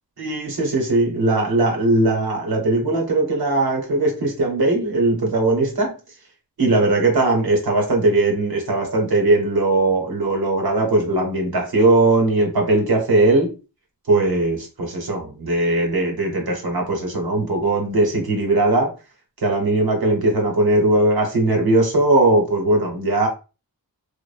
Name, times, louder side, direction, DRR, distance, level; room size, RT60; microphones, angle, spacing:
voice 1, 0.2-5.9 6.6-13.5 14.1-18.9 19.4-23.3, right 2 dB, 70° right, 1.0 m, -19 dB
2.5 x 2.1 x 2.4 m
cardioid pair, 45°, 38 cm